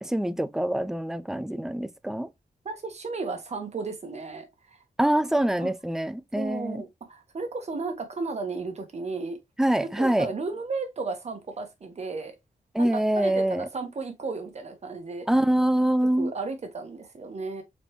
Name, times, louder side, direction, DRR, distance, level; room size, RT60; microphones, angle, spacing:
voice 1, 0.0-2.3 5.0-6.8 9.6-10.3 12.7-13.7 15.3-16.3, right 1 dB, 5° right, 0.3 m, -25 dB
voice 2, 2.6-4.5 5.6-5.7 6.3-9.4 9.8-12.3 12.8-12.9 13.1-15.3 16.2-17.6, right 3 dB, 50° right, 1.2 m, -34 dB
4.1 x 3.3 x 3.1 m
wide cardioid pair, 125°, 15 cm